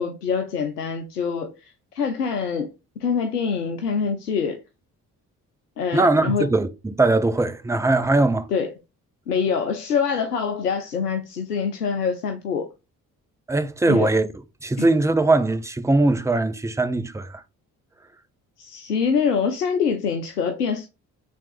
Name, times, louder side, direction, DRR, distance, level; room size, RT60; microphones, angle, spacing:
voice 1, 0.0-1.5 1.9-2.7 3.0-4.6 5.8-6.5 8.5-8.7 9.3-12.7 13.9-14.1 14.8-14.9 18.6-20.9, left 6 dB, 85° left, 0.6 m, -25 dB
voice 2, 5.9-8.5 13.5-14.3 14.6-17.4, right 2 dB, 5° right, 0.6 m, -20 dB
5.8 x 3.5 x 2.4 m
figure-of-eight pair, 45°, 46 cm